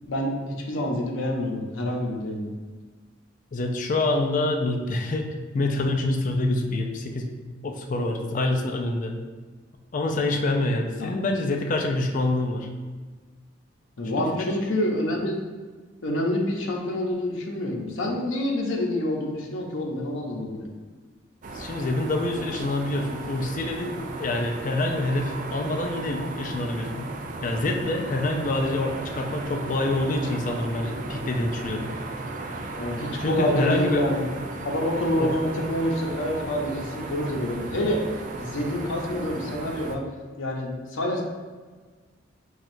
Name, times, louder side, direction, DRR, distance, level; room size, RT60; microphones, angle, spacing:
voice 1, 0.1-2.5 11.0-11.1 14.0-15.3 16.0-20.7 32.8-40.0 40.4-41.3, left 1 dB, 85° left, 0 dB, 0.7 m, -27 dB
voice 2, 3.5-5.3 5.5-7.3 7.6-9.1 9.9-12.7 14.1-14.5 21.5-27.1 27.4-31.9 33.2-34.0 35.2-35.3, left 2 dB, 40° left, 3 dB, 0.4 m, -26 dB
sound 1, 21.4-40.0, right 2 dB, 40° right, 0.3 m, -35 dB
5.9 x 2.3 x 2.6 m, 1.4 s
head